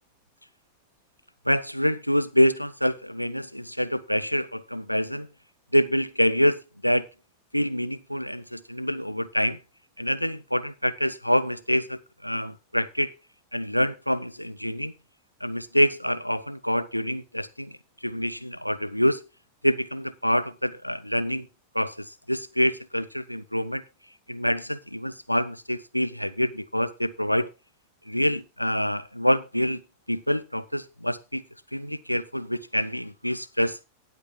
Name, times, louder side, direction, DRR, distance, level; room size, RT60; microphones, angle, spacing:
voice 1, 1.5-5.3 5.7-7.1 7.5-9.6 10.0-13.1 13.5-14.9 15.4-17.8 18.0-19.2 19.6-21.5 21.7-23.8 24.3-27.5 28.1-29.8 30.1-31.4 31.7-33.8, equal, 90° left, 0.7 m, -26 dB
18.5 x 8.2 x 2.3 m
figure-of-eight pair, 90°, 0 cm